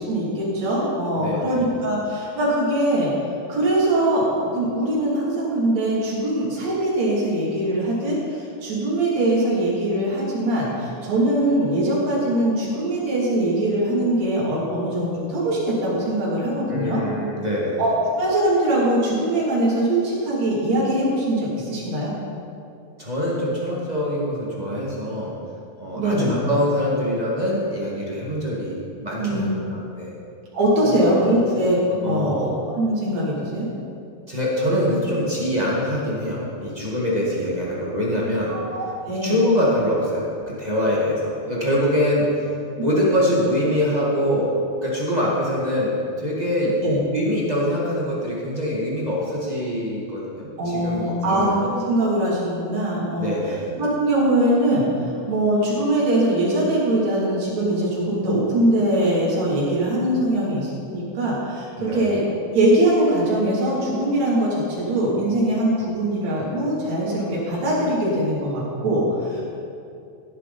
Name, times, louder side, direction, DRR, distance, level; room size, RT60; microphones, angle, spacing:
voice 1, 0.0-3.1 3.5-17.0 17.8-22.1 25.9-26.4 29.2-29.5 30.5-31.8 32.1-33.7 38.5-39.4 42.8-42.9 46.8-47.0 50.6-53.3 53.8-62.2 62.5-69.4, right 1 dB, 50° right, -6 dB, 4.1 m, -22 dB
voice 2, 1.1-1.7 16.7-17.8 23.0-25.3 25.8-30.1 30.8-31.1 31.9-32.4 34.3-38.6 39.2-42.5 42.8-51.4 53.2-53.7 61.8-62.0, equal, 25° right, -5 dB, 0.9 m, -24 dB
16.0 x 9.9 x 4.2 m, 2.5 s
omnidirectional pair, 4.2 m